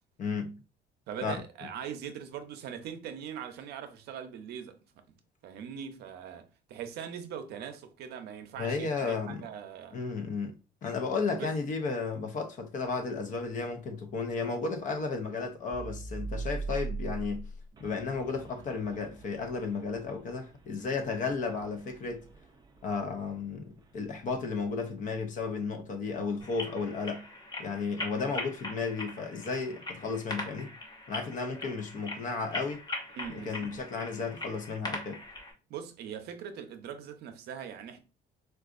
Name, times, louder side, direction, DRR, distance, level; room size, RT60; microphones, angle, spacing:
voice 1, 0.2-0.5 1.2-1.3 8.6-9.5 9.9-10.5 10.8-17.5 17.8-22.3 22.8-27.2 27.6-30.7 31.1-32.8 33.3-35.2, left 4 dB, 50° left, 0.7 m, -33 dB
voice 2, 1.1-4.8 5.1-5.2 5.4-10.0 11.3-11.5 33.1-33.7 35.7-38.0, right 8 dB, 75° right, 0.6 m, -41 dB
sound 1, 12.7-25.5, right 3 dB, 25° right, 0.5 m, -43 dB
sound 2, 26.4-35.5, left 2 dB, 25° left, 0.9 m, -41 dB
3.8 x 2.4 x 2.5 m
cardioid pair, 110°, 17 cm